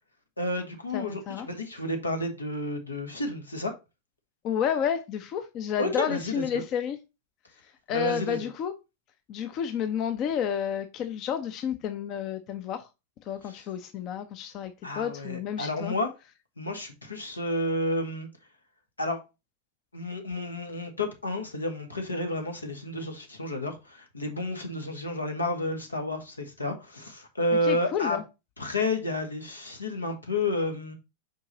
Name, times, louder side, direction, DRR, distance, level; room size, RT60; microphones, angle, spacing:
voice 1, 0.4-3.7 5.8-6.6 7.9-8.5 13.5-13.6 14.8-16.1 16.6-18.3 19.0-19.2 19.9-28.2 28.6-31.0, left 1 dB, 80° left, 1.4 m, -31 dB
voice 2, 0.9-1.5 4.4-7.0 7.9-8.7 9.3-12.9 13.3-15.9 27.7-28.2, left 8 dB, 35° left, 0.7 m, -30 dB
5.5 x 4.7 x 4.0 m
figure-of-eight pair, 90°, 0 cm